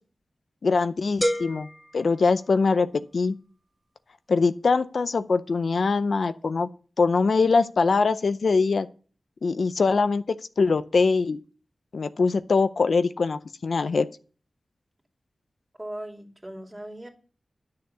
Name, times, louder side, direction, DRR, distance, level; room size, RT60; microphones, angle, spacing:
voice 1, 0.6-1.7 1.9-2.9 3.1-3.4 4.3-6.7 7.0-8.9 9.4-10.2 10.6-11.4 11.9-14.1, left 4 dB, 75° left, 11 dB, 0.6 m, -22 dB
sound 1, 1.2-3.1, equal, 5° left, 1.7 m, -31 dB
voice 2, 15.8-17.1, right 1 dB, 20° right, 2 dB, 2.5 m, -38 dB
10.5 x 6.7 x 6.7 m, 0.39 s
wide cardioid pair, 75°, 0 cm